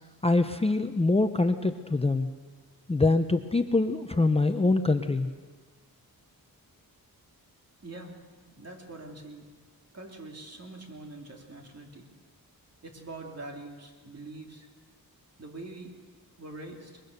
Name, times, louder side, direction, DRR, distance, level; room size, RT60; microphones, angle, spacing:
voice 1, 0.2-2.3 2.9-5.3, left 2 dB, 15° left, 7 dB, 0.6 m, -24 dB
voice 2, 7.8-8.2 8.5-9.5 9.9-12.1 12.8-14.7 15.4-15.9 16.4-17.0, right 2 dB, 45° right, 2 dB, 2.9 m, -44 dB
23.0 x 21.5 x 6.6 m, 1.4 s
wide cardioid pair, 165°, 36 cm